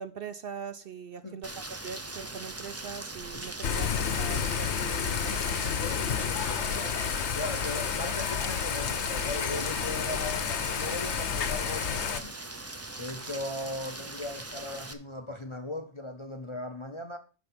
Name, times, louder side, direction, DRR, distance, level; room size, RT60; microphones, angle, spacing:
voice 1, 0.0-1.5 1.8-5.6, right 6 dB, 55° right, 0.7 m, -41 dB
Rain, 1.4-14.9, right 2 dB, 20° right, 0.4 m, -41 dB
Thunder / Rain, 3.6-12.2, left 7 dB, 65° left, 1.1 m, -30 dB
voice 2, 6.1-7.1 7.3-12.3 13.0-17.2, left 2 dB, 30° left, 0.6 m, -38 dB
9.7 x 5.9 x 5.2 m
omnidirectional pair, 1.3 m